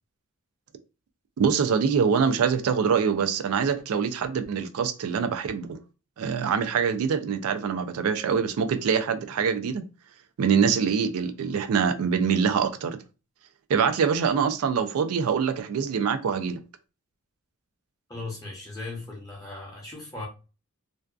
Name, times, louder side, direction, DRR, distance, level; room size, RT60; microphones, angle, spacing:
voice 1, 1.4-5.7 6.2-9.8 10.4-13.0 13.7-16.6, right 6 dB, 75° right, 0.4 m, -24 dB
voice 2, 18.1-20.3, left 2 dB, 15° left, 0.7 m, -37 dB
2.5 x 2.3 x 2.3 m
head